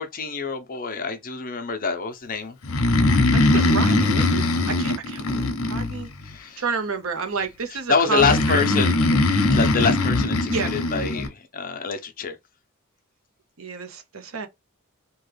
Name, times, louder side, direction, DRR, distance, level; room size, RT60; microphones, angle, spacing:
voice 1, 0.0-2.6 6.2-6.6 7.7-9.0 9.5-12.4, left 5 dB, 40° left, 0.6 m, -26 dB
Breathing, 2.6-6.3 8.2-11.3, left 2 dB, 75° left, 0.7 m, -21 dB
voice 2, 3.3-6.1 6.6-8.6 9.1-9.2 10.5-10.7 13.6-14.5, right 5 dB, 65° right, 0.8 m, -30 dB
3.0 x 2.3 x 3.2 m
head